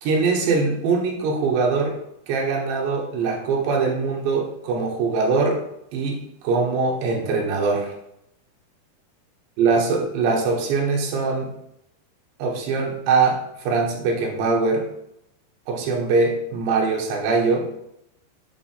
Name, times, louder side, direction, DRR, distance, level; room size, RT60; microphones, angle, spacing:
voice 1, 0.0-2.0 2.3-5.6 5.9-7.9 9.6-11.5 12.4-14.8 15.7-17.7, right 4 dB, 85° right, 0 dB, 3.6 m, -22 dB
9.3 x 3.2 x 5.7 m, 0.78 s
omnidirectional pair, 4.8 m